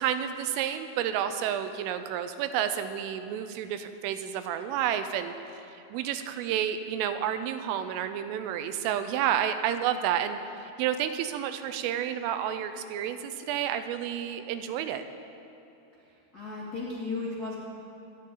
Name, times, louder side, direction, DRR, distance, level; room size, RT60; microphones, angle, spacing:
voice 1, 0.0-15.0, right 9 dB, 90° right, 9 dB, 3.3 m, -30 dB
voice 2, 16.3-17.5, left 3 dB, 35° left, -8 dB, 1.5 m, -34 dB
25.0 x 11.0 x 3.9 m, 2.9 s
omnidirectional pair, 5.7 m